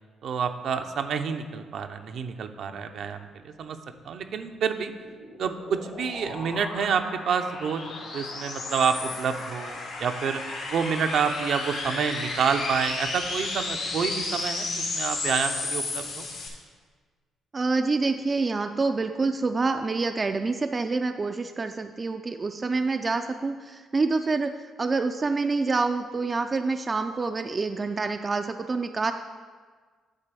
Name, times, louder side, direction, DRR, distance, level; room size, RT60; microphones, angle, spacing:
voice 1, 0.2-3.8 4.0-4.9 5.4-7.8 8.1-10.4 10.7-16.2, right 6 dB, 65° right, 6 dB, 0.6 m, -28 dB
sound 1, 4.7-16.5, left 3 dB, 80° left, 2.0 m, -33 dB
voice 2, 17.5-24.5 24.8-29.1, right 3 dB, 30° right, 6 dB, 0.4 m, -27 dB
9.0 x 4.0 x 6.8 m, 1.5 s
cardioid pair, 90°, 0 cm